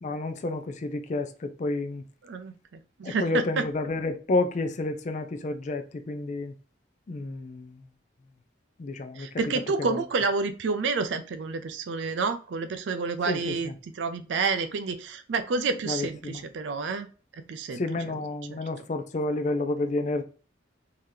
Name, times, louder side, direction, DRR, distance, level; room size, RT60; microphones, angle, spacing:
voice 1, 0.0-2.0 3.0-6.5 7.1-7.7 8.8-9.3 9.8-10.0 13.3-13.7 15.9-16.4 17.7-20.2, left 2 dB, 40° left, 0.4 m, -30 dB
voice 2, 2.2-2.5 3.0-3.7 9.2-17.1 17.5-18.2 18.5-18.6, right 4 dB, 75° right, 0.4 m, -29 dB
3.7 x 2.8 x 3.1 m
head